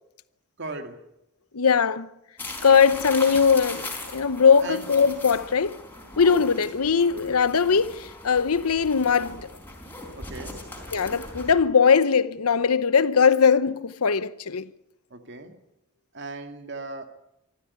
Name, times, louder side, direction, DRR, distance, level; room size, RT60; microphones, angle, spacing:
voice 1, 0.6-1.0 4.6-4.9 10.2-10.7 15.1-15.6 16.1-17.0, right 3 dB, 55° right, 2.2 m, -37 dB
voice 2, 1.5-2.1 2.6-5.8 6.2-9.5 10.9-14.7, left 6 dB, 85° left, 0.9 m, -20 dB
sound 1, 2.4-11.5, left 2 dB, 10° left, 4.4 m, -39 dB
24.5 x 14.0 x 9.6 m
head